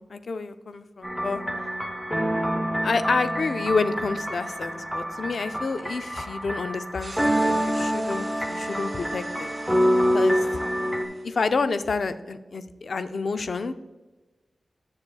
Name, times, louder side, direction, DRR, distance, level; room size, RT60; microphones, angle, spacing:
voice 1, 0.0-1.4 2.8-9.5 10.1-10.4 11.2-13.7, left 4 dB, 70° left, 10 dB, 0.4 m, -28 dB
sound 1, 1.0-11.1, equal, 5° left, 0.7 m, -26 dB
Electric wind, 7.0-11.4, right 2 dB, 45° right, 1.9 m, -45 dB
9.6 x 6.4 x 2.3 m, 1.2 s
wide cardioid pair, 105°, 0 cm